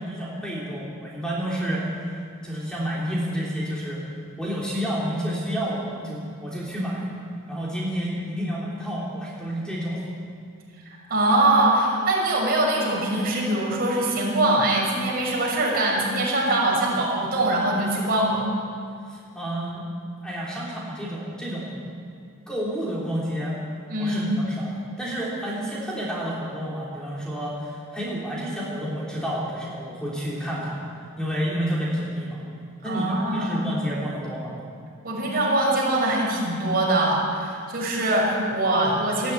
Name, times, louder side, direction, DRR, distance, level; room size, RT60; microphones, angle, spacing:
voice 1, 0.0-4.0 4.4-7.1 7.5-10.0 19.1-19.9 20.2-21.8 22.5-23.6 24.0-30.8 31.2-32.4 32.8-34.6, equal, 5° left, -6 dB, 3.3 m, -30 dB
voice 2, 11.1-18.5 23.9-24.3 32.8-33.6 35.0-39.3, right 1 dB, 45° right, -4 dB, 6.6 m, -23 dB
18.5 x 14.5 x 9.7 m, 2.3 s
head